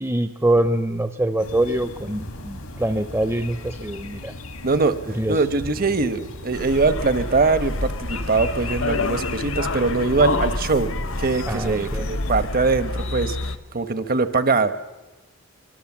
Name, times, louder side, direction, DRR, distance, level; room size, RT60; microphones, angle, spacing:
voice 1, 0.0-4.3 5.1-5.4 11.5-12.1, right 1 dB, 10° right, 10 dB, 0.7 m, -24 dB
sound 1, 1.4-12.3, left 2 dB, 90° left, 2.3 m, -37 dB
voice 2, 4.6-5.0 5.3-10.9 11.2-13.4 13.7-14.9, right 3 dB, 45° right, 12 dB, 1.1 m, -22 dB
sound 2, 6.5-13.6, left 2 dB, 70° left, 1.1 m, -28 dB
24.5 x 22.0 x 7.3 m, 1.2 s
head